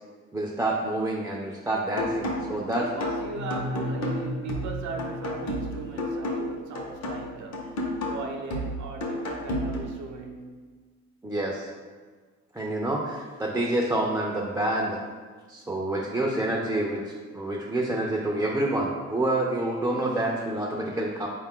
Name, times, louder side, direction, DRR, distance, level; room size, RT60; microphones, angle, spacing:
voice 1, 0.3-2.9 11.2-11.7 12.5-15.0 15.5-21.3, right 1 dB, 10° right, -2 dB, 0.3 m, -28 dB
sound 1, 2.0-10.0, left 1 dB, 60° left, 0.8 m, -32 dB
voice 2, 2.4-10.6, right 4 dB, 70° right, 3 dB, 0.6 m, -38 dB
sound 2, 3.2-6.1, left 1 dB, 85° left, 0.5 m, -35 dB
4.0 x 2.4 x 3.6 m, 1.5 s
cardioid pair, 90°, 30 cm